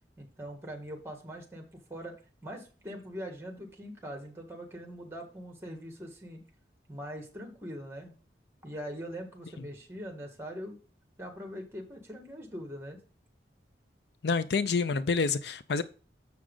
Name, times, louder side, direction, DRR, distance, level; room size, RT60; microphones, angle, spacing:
voice 1, 0.2-2.2 2.4-6.4 6.9-8.2 8.6-10.8 11.2-13.0, equal, 15° right, 1.7 m, -42 dB
voice 2, 14.2-15.8, left 4 dB, 70° left, 0.5 m, -28 dB
7.0 x 6.3 x 3.8 m
head